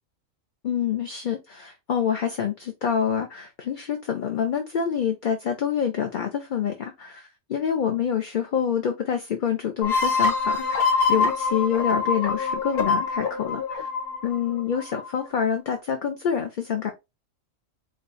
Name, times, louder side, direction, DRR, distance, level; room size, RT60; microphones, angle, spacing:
voice 1, 0.6-13.9 14.2-16.9, left 8 dB, 50° left, 0.7 m, -27 dB
sound 1, 9.8-15.3, left 4 dB, 80° left, 1.6 m, -25 dB
4.9 x 2.3 x 4.0 m
omnidirectional pair, 1.4 m